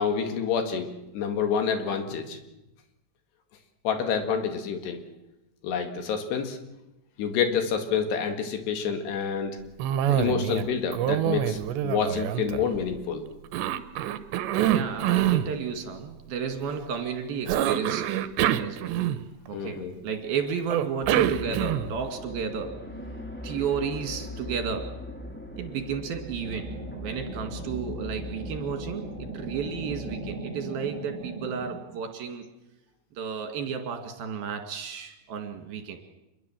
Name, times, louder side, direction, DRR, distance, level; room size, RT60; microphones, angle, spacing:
voice 1, 0.0-2.4 3.8-5.0 5.6-6.6 7.2-9.6 10.1-13.2 19.5-20.0, left 6 dB, 75° left, 6 dB, 4.2 m, -28 dB
Cough, 9.8-10.7 10.9-13.0 13.5-15.5 17.5-19.5 20.7-22.0, right 11 dB, 85° right, 3.2 m, -25 dB
voice 2, 14.5-18.1 18.6-18.9 19.5-19.8 20.0-22.7 23.4-24.9 25.6-26.7 27.0-32.4 33.2-36.0, right 6 dB, 60° right, 5 dB, 4.1 m, -32 dB
sound 1, 21.0-30.2, left 1 dB, 5° left, 1.8 m, -40 dB
sound 2, 26.4-31.7, right 2 dB, 30° right, 5.2 m, -39 dB
26.5 x 22.0 x 7.6 m, 0.95 s
omnidirectional pair, 5.0 m